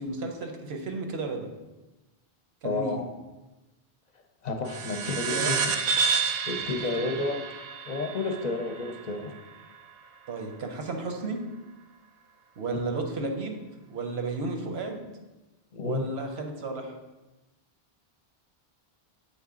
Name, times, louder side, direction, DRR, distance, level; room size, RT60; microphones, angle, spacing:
voice 1, 0.0-1.5 2.6-3.0 5.1-5.6 6.6-6.7 7.0-7.2 10.3-11.4 12.6-13.6 13.9-15.1 15.8-16.9, right 3 dB, 85° right, 4 dB, 1.1 m, -33 dB
voice 2, 2.6-3.1 4.4-5.7 6.5-7.4 7.9-9.3 12.6-12.8 15.7-16.0, left 3 dB, 50° left, 4 dB, 0.7 m, -31 dB
sound 1, 4.7-9.6, right 5 dB, 55° right, 0.6 m, -30 dB
7.4 x 3.9 x 3.7 m, 1.1 s
omnidirectional pair, 1.0 m